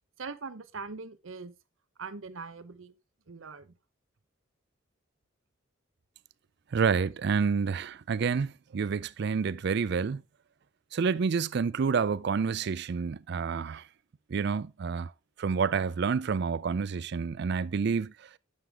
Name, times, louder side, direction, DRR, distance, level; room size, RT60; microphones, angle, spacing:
voice 1, 0.2-1.5 2.0-3.0 3.3-3.7, right 4 dB, 75° right, 0.8 m, -41 dB
voice 2, 6.7-10.2 10.9-13.8 14.3-15.1 15.4-18.1, right 5 dB, 55° right, 0.4 m, -28 dB
9.6 x 6.7 x 3.4 m
head